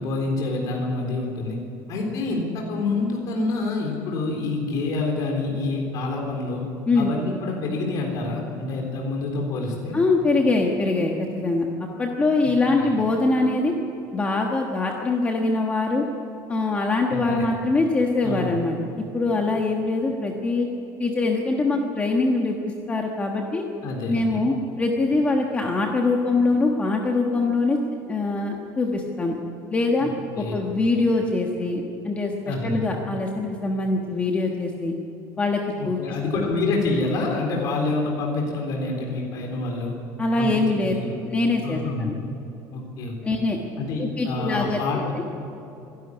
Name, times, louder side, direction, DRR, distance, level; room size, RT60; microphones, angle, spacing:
voice 1, 0.0-1.6 1.9-6.6 7.0-10.0 12.4-12.5 12.8-13.0 17.1-17.4 18.2-18.6 23.8-24.4 30.0-30.5 32.5-32.8 35.8-40.0 40.4-41.1 41.6-42.2 42.7-43.4 43.8-45.0, left 3 dB, 45° left, 0 dB, 3.8 m, -27 dB
voice 2, 9.9-11.7 12.0-13.7 14.1-16.0 16.5-18.8 19.1-20.7 21.0-22.6 22.9-23.6 24.1-27.8 28.1-29.4 29.7-30.1 30.4-34.9 35.4-36.0 36.3-36.4 40.2-40.9 41.2-42.1 43.2-43.6 44.0-44.8, left 3 dB, 15° left, 1 dB, 1.4 m, -23 dB
25.0 x 12.0 x 9.9 m, 2.8 s
cardioid pair, 175°, 8 cm